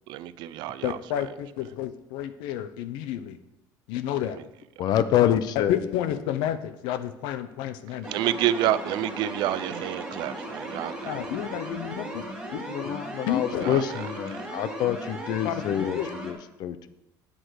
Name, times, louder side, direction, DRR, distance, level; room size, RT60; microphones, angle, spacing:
voice 1, 0.1-1.0 8.1-11.1 13.6-13.8, right 12 dB, 65° right, 15 dB, 0.6 m, -28 dB
voice 2, 0.8-3.4 3.9-4.4 5.2-8.1 11.1-12.7 13.3-13.7 15.4-16.1, left 11 dB, 85° left, 12 dB, 0.8 m, -31 dB
voice 3, 4.8-5.7 12.7-16.9, left 10 dB, 55° left, 13 dB, 0.7 m, -26 dB
sound 1, 8.0-16.3, right 1 dB, 10° right, 2.8 m, -37 dB
8.9 x 7.9 x 6.4 m, 0.90 s
cardioid pair, 145°, 8 cm